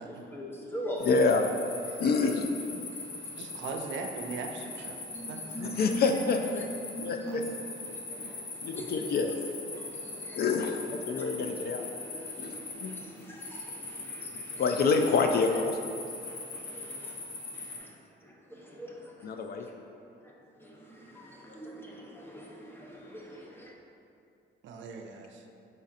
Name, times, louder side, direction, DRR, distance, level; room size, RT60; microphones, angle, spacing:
voice 1, 0.0-1.1 1.9-2.1 2.8-3.6 4.5-15.0 15.5-15.6 16.2-23.7, right 1 dB, 10° left, -2 dB, 0.7 m, -44 dB
sound 1, 1.0-17.8, left 3 dB, 75° left, 0.8 m, -41 dB
voice 2, 1.0-1.4 2.0-2.5 2.7-2.9 5.6-6.6 7.0-7.4 8.6-9.3 10.3-11.8 12.4-12.9 14.6-15.8 19.2-19.7, left 4 dB, 55° left, 4 dB, 0.4 m, -27 dB
voice 3, 3.4-5.0 5.3-5.7 7.3-7.5 16.3-16.5 24.6-25.4, right 4 dB, 70° right, 3 dB, 0.5 m, -40 dB
4.9 x 4.1 x 2.5 m, 2.6 s
cardioid pair, 90°, 20 cm